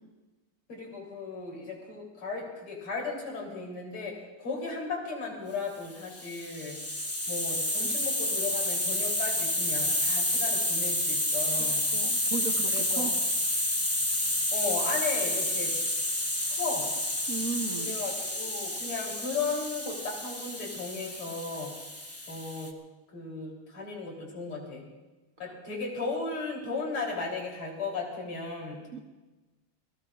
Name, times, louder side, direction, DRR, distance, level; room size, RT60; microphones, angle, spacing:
voice 1, 0.7-6.8 7.3-11.8 12.7-13.1 14.5-15.8 16.5-17.0 17.8-21.7 22.3-22.7 23.1-24.8 25.4-28.8, left 4 dB, 90° left, -1 dB, 4.4 m, -35 dB
Hiss, 6.0-22.7, left 1 dB, 20° left, 0.4 m, -30 dB
voice 2, 11.9-13.1 17.3-18.0 28.9-29.0, right 5 dB, 45° right, 3 dB, 1.4 m, -35 dB
29.5 x 18.0 x 2.5 m, 1.2 s
omnidirectional pair, 2.3 m